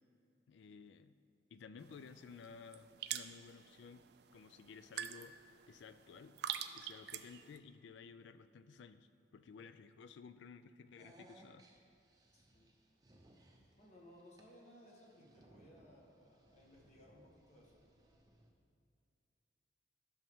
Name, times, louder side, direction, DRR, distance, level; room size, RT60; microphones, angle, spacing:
voice 1, 0.5-1.1 1.5-4.1 4.3-5.3 5.7-6.4 6.7-11.7, left 5 dB, 70° left, 12 dB, 0.3 m, -55 dB
sound 1, 1.8-7.6, right 10 dB, 55° right, 0.3 m, -47 dB
sound 2, 11.0-18.5, right 1 dB, 20° right, 0.7 m, -66 dB
voice 2, 12.3-12.7 13.8-17.8, equal, 35° left, -3 dB, 1.3 m, -61 dB
11.0 x 6.5 x 3.6 m, 2.4 s
head